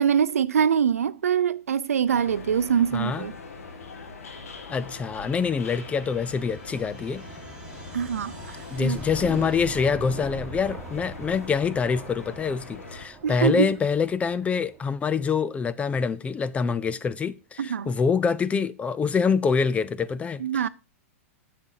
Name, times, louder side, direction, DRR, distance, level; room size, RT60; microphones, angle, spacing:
voice 1, 0.0-3.3 7.9-9.0 13.2-13.7 17.6-17.9 20.4-20.7, right 8 dB, 85° right, 0.6 m, -24 dB
sound 1, 2.1-13.1, left 4 dB, 85° left, 1.8 m, -42 dB
voice 2, 2.9-3.3 4.7-7.2 8.7-20.7, left 5 dB, 15° left, 0.5 m, -25 dB
sound 2, 2.9-16.2, right 3 dB, 10° right, 2.5 m, -43 dB
10.5 x 7.5 x 2.7 m
hypercardioid pair, 120°, 8 cm